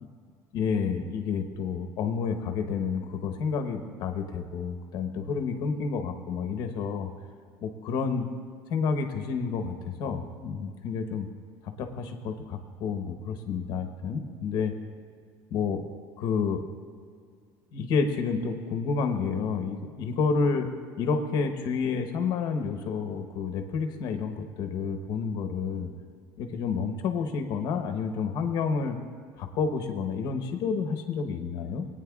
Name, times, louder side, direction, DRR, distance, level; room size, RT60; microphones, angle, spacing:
voice 1, 0.5-7.1 7.6-8.3 8.7-11.3 11.6-14.8 15.5-15.8 16.2-16.6 17.7-20.7 21.0-25.9 26.4-29.0 29.4-31.9, left 5 dB, 50° left, 6 dB, 1.0 m, -29 dB
21.5 x 9.1 x 2.4 m, 2.2 s
cardioid pair, 155°, 9 cm